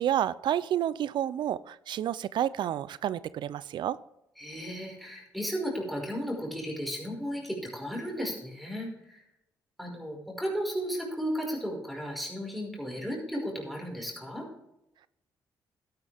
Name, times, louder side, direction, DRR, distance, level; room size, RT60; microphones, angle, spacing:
voice 1, 0.0-4.0, right 11 dB, 75° right, 18 dB, 0.5 m, -30 dB
voice 2, 4.4-9.2 9.8-14.5, equal, ahead, -2 dB, 5.2 m, -34 dB
12.0 x 11.5 x 3.5 m, 0.86 s
cardioid pair, 70°, 8 cm